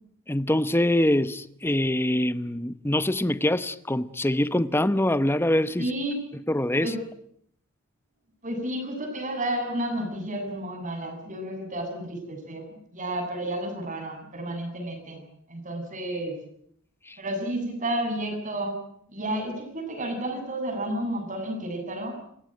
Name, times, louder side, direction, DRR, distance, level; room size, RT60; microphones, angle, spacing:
voice 1, 0.3-5.9 6.5-6.9 17.1-17.2, left 1 dB, 10° left, 0.9 m, -24 dB
voice 2, 5.8-6.2 6.8-7.0 8.4-15.2 15.5-16.4 17.2-18.7 19.1-22.2, right 1 dB, 40° right, 8.0 m, -31 dB
28.5 x 16.5 x 9.2 m
head